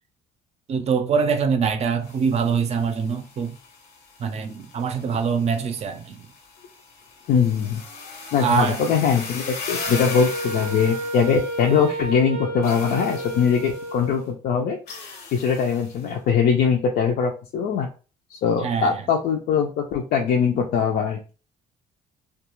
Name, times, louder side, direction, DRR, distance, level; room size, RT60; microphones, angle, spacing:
voice 1, 0.7-3.6 4.2-6.3 8.4-8.8 18.6-19.0, right 6 dB, 40° right, 0.5 m, -24 dB
sound 1, 2.0-12.0 12.6-14.0 14.9-16.1, left 4 dB, 85° left, 0.8 m, -38 dB
voice 2, 7.3-7.8 8.3-14.8 15.3-17.9 18.3-21.2, left 6 dB, 65° left, 0.4 m, -21 dB
Wind instrument woodwind instrument, 9.7-14.3, right 1 dB, 90° right, 0.6 m, -31 dB
2.3 x 2.3 x 2.9 m
cardioid pair, 110°, 17 cm